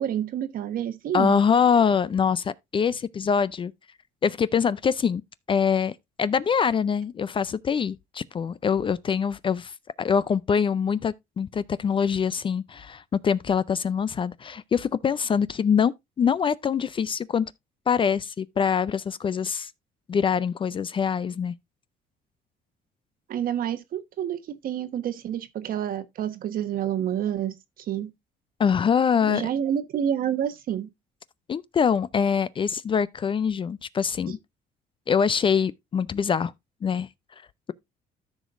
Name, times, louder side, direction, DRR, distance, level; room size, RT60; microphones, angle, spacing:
voice 1, 0.0-1.4 23.3-28.1 29.2-30.9, right 10 dB, 60° right, 1.1 m, -28 dB
voice 2, 1.1-3.7 4.2-5.2 5.5-17.5 17.9-19.7 20.1-21.5 28.6-29.5 31.5-34.4 35.1-36.5 36.8-37.1, left 6 dB, 30° left, 0.4 m, -24 dB
14.0 x 5.1 x 2.4 m
cardioid pair, 110°, 17 cm